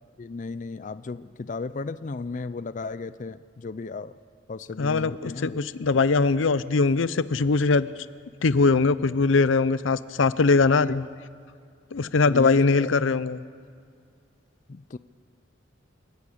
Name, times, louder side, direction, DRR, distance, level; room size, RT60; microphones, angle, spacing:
voice 1, 0.2-4.2 4.5-5.6 10.8-11.0 12.2-12.9 14.7-15.0, left 3 dB, 40° left, 15 dB, 0.4 m, -34 dB
voice 2, 4.8-7.9 8.4-11.0 11.9-13.4, left 4 dB, 85° left, 16 dB, 0.6 m, -21 dB
28.5 x 11.5 x 8.5 m, 2.1 s
head